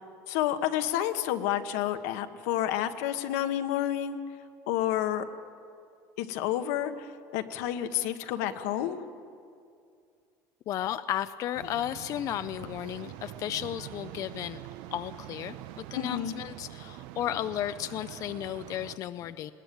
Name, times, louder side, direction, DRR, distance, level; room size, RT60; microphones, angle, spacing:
voice 1, 0.3-4.2 4.7-5.2 6.2-9.0 15.9-16.4, left 11 dB, 85° left, 7 dB, 1.3 m, -30 dB
voice 2, 10.7-14.6 14.9-19.5, left 11 dB, 45° left, 12 dB, 0.5 m, -34 dB
sound 1, 11.5-19.0, right 14 dB, 75° right, 0.7 m, -44 dB
20.5 x 19.0 x 9.1 m, 2.3 s
cardioid pair, 140°, 8 cm